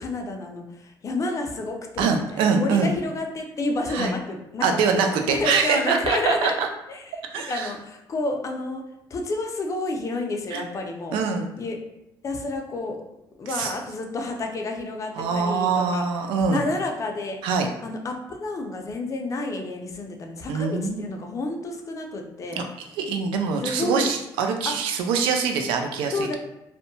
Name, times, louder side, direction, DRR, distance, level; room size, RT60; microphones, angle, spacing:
voice 1, 0.0-4.8 5.1-6.5 6.9-8.8 9.1-11.2 11.6-11.8 12.2-13.0 13.4-16.1 16.5-17.4 17.8-22.6 23.6-24.1 24.7-24.8 26.1-26.4, left 2 dB, 40° left, 3 dB, 0.5 m, -30 dB
voice 2, 2.0-2.9 3.9-4.1 4.6-6.7 7.3-7.7 10.5-10.6 11.1-11.5 13.6-13.7 15.2-16.7 17.4-17.7 20.5-21.0 22.6-22.7 23.0-26.4, right 5 dB, 85° right, 4 dB, 0.4 m, -24 dB
2.6 x 2.1 x 2.6 m, 0.89 s
cardioid pair, 85°, 9 cm